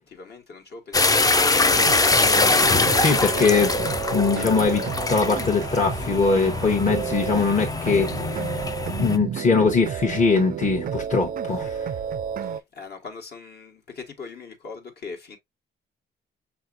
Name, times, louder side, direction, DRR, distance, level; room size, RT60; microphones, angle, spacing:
voice 1, 0.1-2.1 12.4-15.4, left 4 dB, 55° left, 1.3 m, -41 dB
sound 1, 0.9-9.2, left 3 dB, 20° left, 0.4 m, -23 dB
sound 2, 1.7-12.6, right 8 dB, 45° right, 0.4 m, -31 dB
voice 2, 2.9-8.4 8.9-11.9, left 4 dB, 35° left, 1.0 m, -22 dB
6.0 x 2.8 x 2.5 m
cardioid pair, 90°, 20 cm